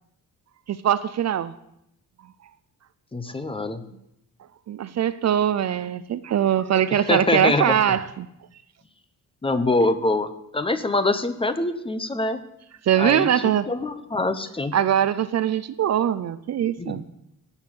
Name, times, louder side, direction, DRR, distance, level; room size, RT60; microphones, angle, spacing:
voice 1, 0.7-1.5 4.7-8.3 12.8-13.7 14.7-17.0, right 10 dB, 50° right, 15 dB, 0.5 m, -22 dB
voice 2, 3.1-3.8 6.9-7.8 9.4-12.4 13.0-14.8 16.8-17.0, left 2 dB, 15° left, 10 dB, 0.8 m, -24 dB
16.5 x 6.4 x 8.6 m, 0.81 s
wide cardioid pair, 175°, 35 cm